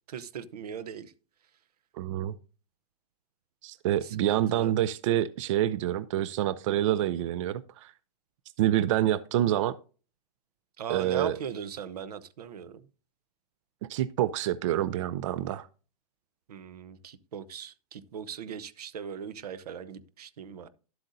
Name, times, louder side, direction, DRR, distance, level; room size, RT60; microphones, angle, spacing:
voice 1, 0.1-1.1 4.0-4.7 10.8-12.8 16.5-20.7, right 8 dB, 85° right, 0.8 m, -39 dB
voice 2, 1.9-2.3 3.6-7.9 8.6-9.8 10.9-11.4 13.9-15.7, right 12 dB, 55° right, 0.5 m, -27 dB
11.5 x 7.8 x 2.6 m
hypercardioid pair, 145°, 19 cm